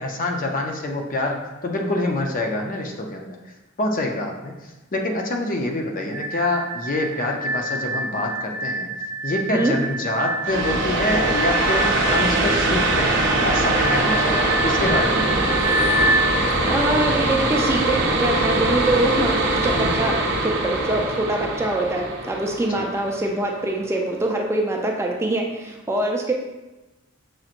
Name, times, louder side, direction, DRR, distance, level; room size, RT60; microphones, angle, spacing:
voice 1, 0.0-3.5 3.8-8.9 9.2-15.7 19.6-19.9 22.8-22.9, left 1 dB, 40° left, 2 dB, 0.5 m, -26 dB
sound 1, 6.1-16.2, right 1 dB, 35° right, 1.0 m, -27 dB
sound 2, 10.4-23.8, right 2 dB, 60° right, 0.5 m, -22 dB
voice 2, 16.7-26.3, right 1 dB, 15° right, 0 dB, 0.4 m, -24 dB
6.3 x 2.9 x 2.5 m, 1.1 s
head